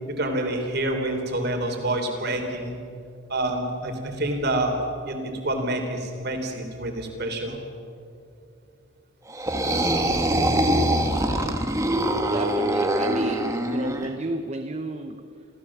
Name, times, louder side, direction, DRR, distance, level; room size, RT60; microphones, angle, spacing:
voice 1, 0.1-2.7 3.3-4.7 5.1-7.6, right 1 dB, 50° right, 4 dB, 3.3 m, -27 dB
sound 1, 9.3-14.1, right 1 dB, 15° right, 1.3 m, -23 dB
voice 2, 12.3-15.5, right 2 dB, 30° right, 6 dB, 0.8 m, -32 dB
26.5 x 16.0 x 7.3 m, 2.5 s
head